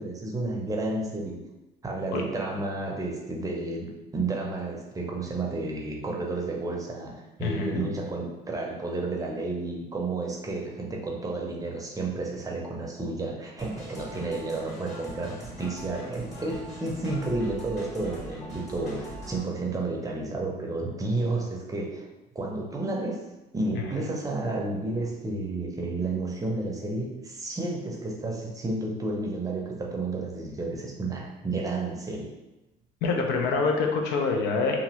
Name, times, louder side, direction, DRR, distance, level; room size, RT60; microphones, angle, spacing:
voice 1, 0.0-1.4 1.8-7.1 7.4-22.1 22.3-23.2 23.5-32.3, right 2 dB, 20° right, -1 dB, 0.5 m, -31 dB
voice 2, 7.4-7.8 23.9-24.0 33.0-34.8, left 4 dB, 80° left, 2 dB, 0.5 m, -26 dB
sound 1, 13.6-19.4, equal, 40° left, 1.5 m, -41 dB
2.9 x 2.4 x 2.9 m, 1.0 s
cardioid pair, 110°, 17 cm